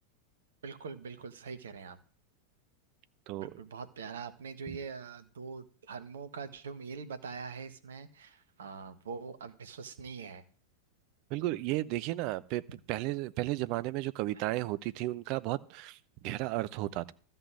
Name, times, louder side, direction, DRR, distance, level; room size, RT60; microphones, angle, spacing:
voice 1, 0.6-2.0 3.3-10.4 14.4-14.5, right 5 dB, 65° right, 1.5 m, -43 dB
voice 2, 3.3-3.6 11.3-12.6 12.9-17.1, right 17 dB, 45° right, 0.7 m, -34 dB
13.5 x 5.5 x 7.7 m
figure-of-eight pair, 90°, 0 cm